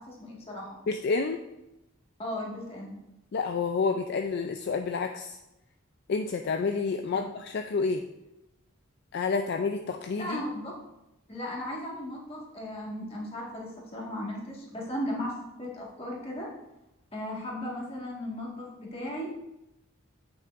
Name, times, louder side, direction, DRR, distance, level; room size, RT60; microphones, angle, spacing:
voice 1, 0.0-0.8 2.2-2.9 10.2-10.7 11.3-15.3 15.6-16.5 17.1-19.3, left 1 dB, 25° left, -4 dB, 1.7 m, -36 dB
voice 2, 0.9-1.4 3.3-5.4 6.1-8.0 9.1-10.4, left 4 dB, 50° left, 6 dB, 0.3 m, -29 dB
8.4 x 6.5 x 2.5 m, 0.93 s
head